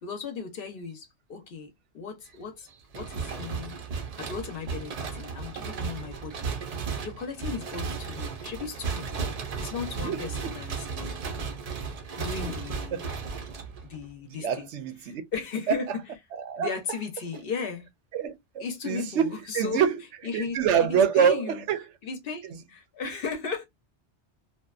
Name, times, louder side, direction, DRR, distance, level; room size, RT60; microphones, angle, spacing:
voice 1, 0.0-2.7 2.9-3.8 4.2-9.2 9.6-11.3 12.2-13.0 13.8-14.7 15.0-16.1 16.6-17.9 18.6-19.8 20.2-21.6 22.0-23.7, left 5 dB, 60° left, 0.8 m, -36 dB
sound 1, 2.9-14.1, right 5 dB, 50° right, 0.5 m, -35 dB
voice 2, 10.0-10.5 12.4-12.5 12.9-13.1 14.4-15.2 16.4-16.7 18.1-19.9 20.3-21.8, right 7 dB, 85° right, 0.9 m, -26 dB
2.7 x 2.1 x 2.3 m
omnidirectional pair, 1.2 m